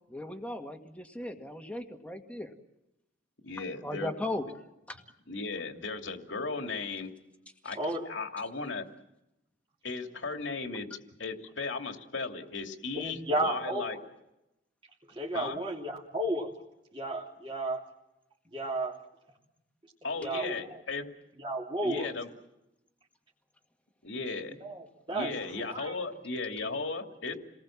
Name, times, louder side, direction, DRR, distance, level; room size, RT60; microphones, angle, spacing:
voice 1, 0.1-2.5 3.8-4.5 4.9-5.0, left 1 dB, 5° left, 4 dB, 1.9 m, -37 dB
voice 2, 3.4-4.1 5.3-7.1 7.6-7.8 8.1-8.8 9.8-10.9 11.2-14.0 15.3-15.6 20.0-21.0 21.8-22.3 24.0-24.5 25.1-27.4, left 3 dB, 80° left, 5 dB, 2.6 m, -36 dB
voice 3, 7.7-8.1 12.9-14.0 15.1-16.5 16.9-17.8 18.5-19.0 20.2-20.8 21.4-22.1 24.6-25.4 25.6-25.9, right 1 dB, 25° right, -3 dB, 3.0 m, -33 dB
29.0 x 20.0 x 7.4 m, 0.90 s
head